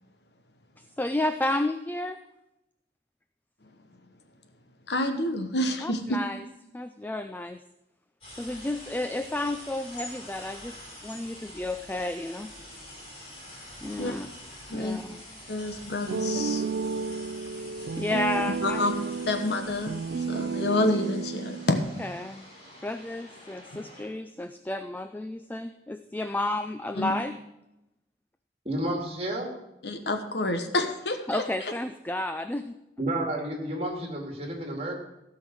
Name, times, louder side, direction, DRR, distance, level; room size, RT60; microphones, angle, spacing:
voice 1, 0.8-2.2 5.8-6.4 6.7-7.6 8.4-12.5 13.8-14.3 14.7-15.2 17.5-17.7 18.0-18.9 22.0-22.4 22.8-27.3 31.3-32.7, left 1 dB, 10° left, 9 dB, 0.3 m, -32 dB
voice 2, 4.9-6.2 14.0-14.1 14.7-15.0 15.5-16.6 18.6-21.8 23.7-23.8 26.9-27.1 29.8-31.4, left 2 dB, 75° left, 7 dB, 1.2 m, -28 dB
sound 1, 8.2-24.1, left 1 dB, 30° left, 5.4 m, -46 dB
sound 2, 16.1-22.1, right 5 dB, 70° right, 0.4 m, -32 dB
voice 3, 28.6-29.5 33.0-35.0, right 1 dB, 35° right, 1 dB, 2.3 m, -31 dB
15.5 x 5.7 x 6.2 m, 0.91 s
head